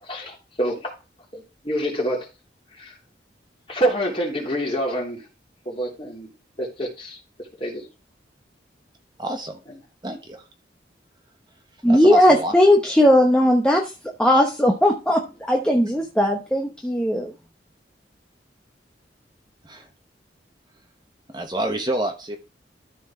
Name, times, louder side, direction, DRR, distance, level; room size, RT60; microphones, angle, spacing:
voice 1, 0.0-0.9 1.3-2.3 2.7-3.0 3.7-5.3 5.6-6.3 6.6-7.2 7.6-7.9, right 1 dB, 30° left, -1 dB, 3.0 m, -27 dB
voice 2, 9.2-9.6 10.0-10.4 11.9-12.5 19.6-19.9 21.3-22.4, right 1 dB, 25° right, 4 dB, 1.2 m, -28 dB
voice 3, 11.8-13.8 14.2-17.3, left 1 dB, 5° left, 0 dB, 1.0 m, -18 dB
13.0 x 4.4 x 4.4 m, 0.30 s
head